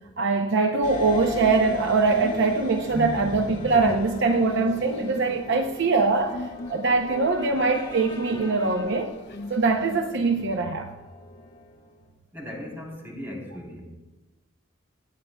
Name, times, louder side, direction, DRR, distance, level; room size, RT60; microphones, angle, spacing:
voice 1, 0.2-6.4 6.7-9.1 9.5-10.9, right 3 dB, 65° right, 0.7 m, -23 dB
sound 1, 0.8-12.1, left 1 dB, 40° left, 2.0 m, -41 dB
sound 2, 0.9-9.2 10.5-10.6, left 2 dB, 25° left, 1.4 m, -39 dB
sound 3, 1.2-10.5, left 2 dB, 60° left, 0.8 m, -40 dB
voice 2, 12.3-13.8, left 1 dB, 10° right, 3.4 m, -37 dB
24.5 x 9.3 x 2.2 m
head